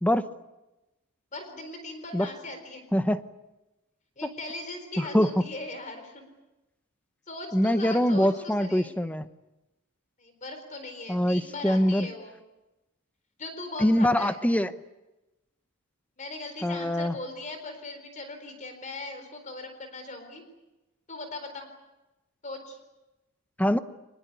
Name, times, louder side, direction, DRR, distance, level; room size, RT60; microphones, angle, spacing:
voice 1, 1.3-2.8 4.2-6.2 7.3-8.9 10.2-12.4 13.4-14.4 16.2-20.4 21.1-21.7 22.4-22.8, left 2 dB, 35° left, 7 dB, 4.1 m, -39 dB
voice 2, 5.0-5.3 7.5-9.3 11.1-12.1 13.8-14.7 16.6-17.1 23.6-23.8, equal, 5° left, 11 dB, 0.8 m, -23 dB
24.5 x 21.0 x 9.5 m, 1.0 s
head